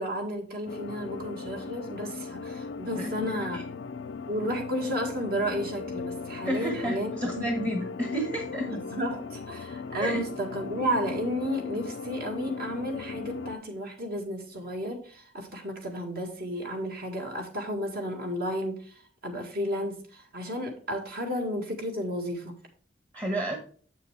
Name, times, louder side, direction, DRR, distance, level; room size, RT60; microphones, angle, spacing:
voice 1, 0.0-3.6 4.3-7.7 8.7-19.0 19.2-22.6, equal, 55° right, 2 dB, 2.0 m, -33 dB
sound 1, 0.7-13.6, left 4 dB, 70° left, 0.5 m, -37 dB
voice 2, 2.9-3.6 6.4-8.7 10.0-10.2 23.1-23.6, right 1 dB, 20° right, 3 dB, 1.2 m, -31 dB
7.6 x 6.7 x 3.3 m, 0.44 s
head